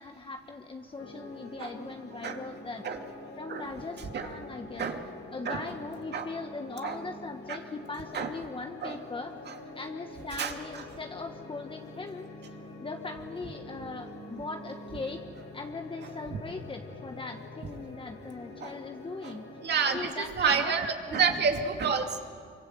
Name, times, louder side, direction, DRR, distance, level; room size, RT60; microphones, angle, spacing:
voice 1, 0.0-2.9 3.4-4.9 5.3-9.4 9.7-12.3 12.8-15.2 15.5-19.5 19.9-20.7 21.1-21.5, left 3 dB, 25° left, 4 dB, 1.4 m, -40 dB
sound 1, 1.0-20.1, left 2 dB, 85° left, 4.2 m, -46 dB
voice 2, 19.6-22.2, right 6 dB, 55° right, 4 dB, 2.5 m, -28 dB
25.0 x 24.5 x 7.9 m, 2.2 s
cardioid pair, 90°, 20 cm